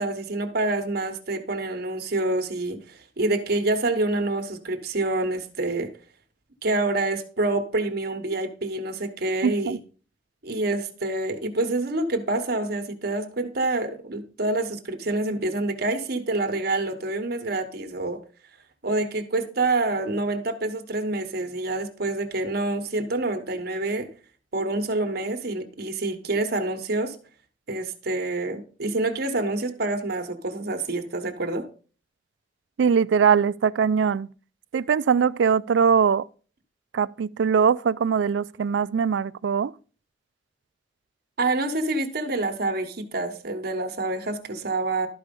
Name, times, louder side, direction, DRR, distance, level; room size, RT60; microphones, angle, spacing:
voice 1, 0.0-5.9 6.6-9.8 10.4-18.2 18.8-24.1 24.5-27.2 27.7-31.7 41.4-45.1, right 2 dB, 60° right, 1.1 m, -27 dB
voice 2, 9.4-9.8 32.8-34.3 34.7-36.2 36.9-39.7, right 6 dB, 80° right, 0.4 m, -21 dB
12.0 x 4.8 x 5.2 m
head